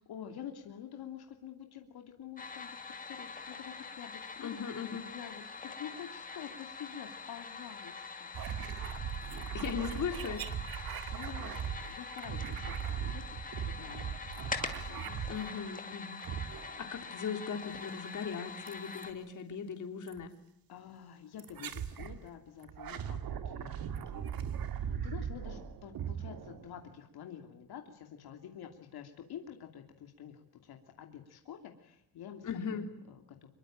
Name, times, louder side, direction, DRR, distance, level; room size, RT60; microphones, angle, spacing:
voice 1, 0.1-4.6 4.9-8.6 9.4-9.5 11.1-14.0 14.4-14.5 14.9-15.2 20.7-24.4 24.8-33.5, left 9 dB, 75° left, 4 dB, 2.8 m, -48 dB
sound 1, 2.4-19.1, left 4 dB, 20° left, 2.5 m, -44 dB
voice 2, 4.4-5.1 9.5-10.5 15.3-16.2 16.8-20.3 32.4-32.9, left 6 dB, 50° left, 6 dB, 3.5 m, -38 dB
sound 2, 8.3-15.8 16.2-17.0 18.7-19.1 20.1-20.2 21.4-22.2 22.6-27.0, right 8 dB, 65° right, 2.2 m, -39 dB
25.5 x 22.5 x 8.8 m, 0.77 s
cardioid pair, 165°, 38 cm